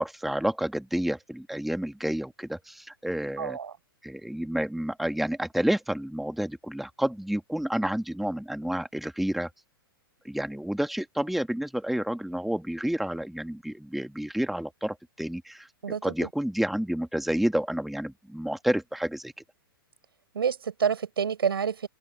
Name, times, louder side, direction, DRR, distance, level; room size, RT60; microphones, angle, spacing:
voice 1, 0.0-3.6 4.0-9.5 10.2-15.7 16.0-19.3, right 1 dB, ahead, 1.6 m, -29 dB
voice 2, 3.4-3.8 15.8-16.3 20.3-21.9, right 7 dB, 80° right, 7.1 m, -28 dB
open air
hypercardioid pair, 115°, 12 cm